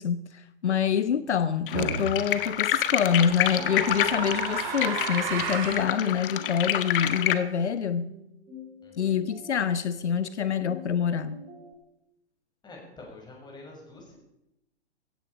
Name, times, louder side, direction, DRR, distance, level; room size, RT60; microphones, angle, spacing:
voice 1, 0.0-8.1 9.0-11.4, left 7 dB, 80° left, 1.0 m, -26 dB
sound 1, 1.7-7.3, left 12 dB, 50° left, 1.5 m, -28 dB
sound 2, 1.7-2.1 3.1-5.9, right 8 dB, 45° right, 3.3 m, -33 dB
sound 3, 3.0-11.7, left 1 dB, 20° right, 6.8 m, -47 dB
voice 2, 8.8-9.2 12.6-14.2, left 2 dB, 10° left, 6.4 m, -47 dB
17.0 x 15.5 x 4.9 m
hypercardioid pair, 120°, 34 cm